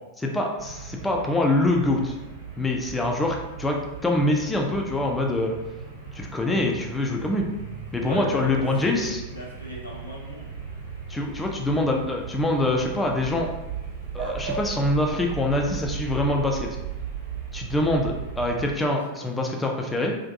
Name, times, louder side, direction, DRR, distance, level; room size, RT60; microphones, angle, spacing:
voice 1, 0.2-2.1 2.6-3.8 4.0-5.6 6.1-7.5 7.9-9.2 11.1-13.5 14.1-16.7 17.5-20.2, left 2 dB, 10° left, 0 dB, 0.3 m, -24 dB
sound 1, 0.6-18.7, right 6 dB, 50° right, 0.9 m, -37 dB
voice 2, 3.0-3.3 8.0-10.5 18.3-18.4 19.1-19.3, left 1 dB, 85° left, -5 dB, 0.7 m, -36 dB
2.5 x 2.5 x 2.4 m, 1.0 s
figure-of-eight pair, 90°, 0 cm